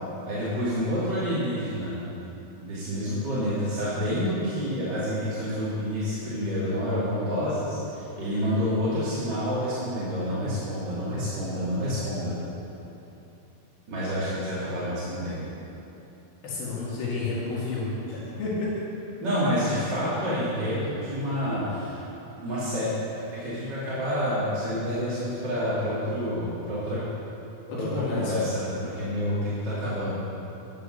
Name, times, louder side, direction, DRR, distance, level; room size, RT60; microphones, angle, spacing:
voice 1, 0.2-1.9 2.6-12.3 13.9-15.4 19.2-22.0 22.4-27.0 27.7-30.1, equal, 35° right, -11 dB, 2.2 m, -28 dB
voice 2, 16.4-18.7 27.7-28.3, left 3 dB, 70° left, -6 dB, 3.7 m, -30 dB
9.9 x 7.7 x 6.4 m, 2.9 s
omnidirectional pair, 4.6 m